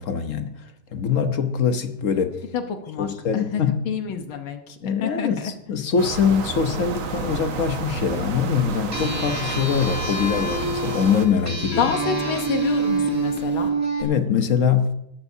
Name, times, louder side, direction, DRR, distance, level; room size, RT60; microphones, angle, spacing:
voice 1, 0.0-2.4 3.0-3.8 4.8-11.9 14.0-14.9, left 7 dB, 55° left, 0.9 m, -23 dB
voice 2, 2.5-5.5 11.8-13.8, left 6 dB, 75° left, 1.9 m, -28 dB
sound 1, 6.0-11.3, right 6 dB, 70° right, 1.8 m, -31 dB
sound 2, 6.1-13.7, left 1 dB, 10° left, 0.6 m, -41 dB
sound 3, 8.9-14.0, right 3 dB, 10° right, 1.9 m, -27 dB
18.5 x 13.5 x 2.8 m
omnidirectional pair, 2.3 m